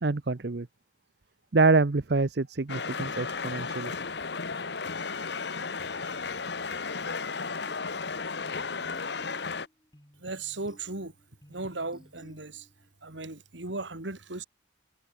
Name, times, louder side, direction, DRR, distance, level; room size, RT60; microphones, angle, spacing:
voice 1, 0.0-0.7 1.5-4.0, right 3 dB, 60° right, 0.8 m, -26 dB
sound 1, 2.7-9.7, left 4 dB, 65° left, 1.2 m, -34 dB
sound 2, 8.4-12.9, equal, 20° left, 7.8 m, -57 dB
voice 2, 10.2-11.1 11.5-12.7 13.0-14.4, right 3 dB, 80° right, 2.8 m, -36 dB
head